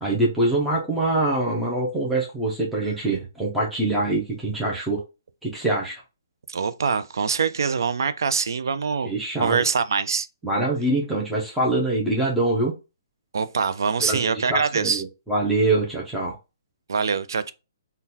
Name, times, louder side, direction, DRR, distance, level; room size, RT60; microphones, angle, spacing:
voice 1, 0.0-5.0 5.4-6.0 9.0-9.6 10.4-12.8 14.0-16.3, right 2 dB, ahead, 0.5 m, -24 dB
voice 2, 6.5-10.3 13.3-15.0 16.9-17.5, right 5 dB, 70° right, 0.4 m, -24 dB
3.7 x 2.2 x 2.7 m
hypercardioid pair, 170°, 2 cm